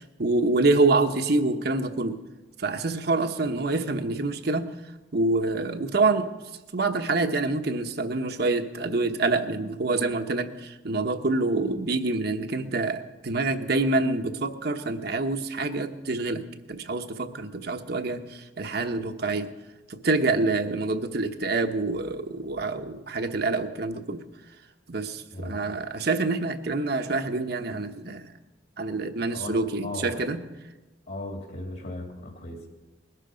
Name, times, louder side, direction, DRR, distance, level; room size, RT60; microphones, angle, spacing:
voice 1, 0.0-2.2 2.6-4.7 5.1-6.4 6.7-19.5 20.0-24.2 24.9-28.3 28.8-30.4, right 3 dB, 60° right, 7 dB, 1.1 m, -26 dB
voice 2, 29.3-30.2 31.1-32.7, left 2 dB, 60° left, 2 dB, 3.0 m, -37 dB
21.0 x 12.5 x 5.2 m, 1.1 s
head